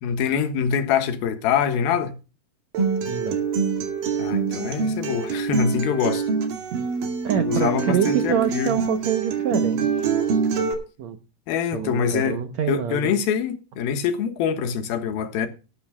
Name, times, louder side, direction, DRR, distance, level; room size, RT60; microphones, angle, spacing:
voice 1, 0.0-2.1 4.2-6.2 7.4-8.8 11.5-12.4 12.7-15.5, left 7 dB, 70° left, 3.1 m, -24 dB
Acoustic guitar, 2.7-10.7, right 5 dB, 60° right, 3.6 m, -25 dB
voice 2, 3.1-3.4 6.7-6.8 7.2-10.1 11.0-11.2 11.7-13.1, right 8 dB, 85° right, 1.5 m, -26 dB
18.0 x 12.5 x 2.3 m
omnidirectional pair, 4.7 m